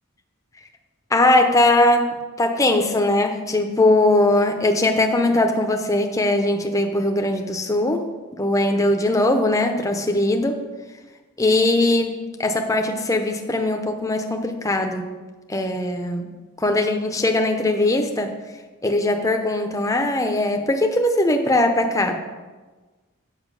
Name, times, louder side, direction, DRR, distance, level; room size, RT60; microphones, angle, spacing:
voice 1, 1.1-8.0 8.4-10.6 11.4-12.1 12.4-15.1 15.5-16.3 16.6-18.4 18.8-22.2, left 2 dB, 15° left, 5 dB, 0.6 m, -20 dB
8.2 x 5.5 x 6.8 m, 1.3 s
head